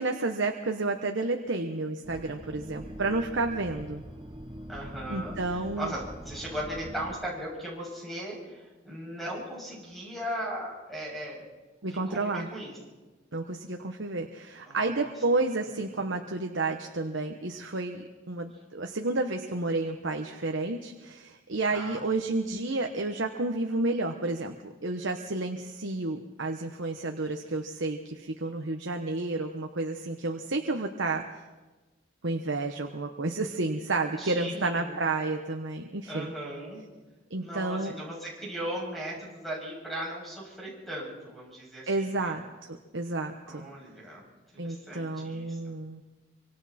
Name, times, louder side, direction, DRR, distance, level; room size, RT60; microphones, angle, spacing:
voice 1, 0.0-4.0 5.1-6.0 11.8-12.5 13.3-31.2 32.2-36.3 37.3-37.9 41.9-42.4 42.9-43.7 44.6-46.0, right 2 dB, 75° right, 4 dB, 1.1 m, -31 dB
sound 1, 2.0-7.2, equal, 25° right, 1.4 m, -43 dB
voice 2, 4.7-11.5 11.9-12.7 14.7-15.1 15.8-16.0 21.7-22.1 33.9-35.0 36.1-36.8 37.4-42.3 43.5-44.2 44.5-45.6, equal, ahead, -4 dB, 7.0 m, -38 dB
25.0 x 25.0 x 4.3 m, 1.2 s
head